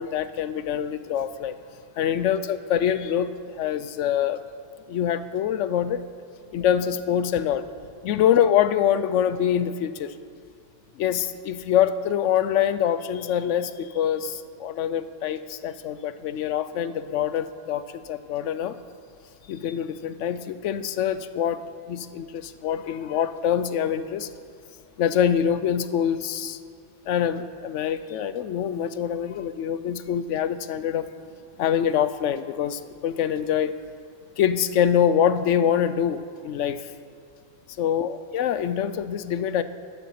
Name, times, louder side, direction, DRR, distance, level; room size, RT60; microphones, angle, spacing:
voice 1, 0.0-1.6 2.0-4.4 4.9-6.0 6.5-7.7 8.0-10.1 11.0-18.8 19.5-24.3 25.0-26.6 27.1-31.1 31.6-33.7 34.4-36.9 37.8-39.6, left 9 dB, 90° left, 13 dB, 0.9 m, -25 dB
13.0 x 9.2 x 5.8 m, 2.3 s
omnidirectional pair, 1.2 m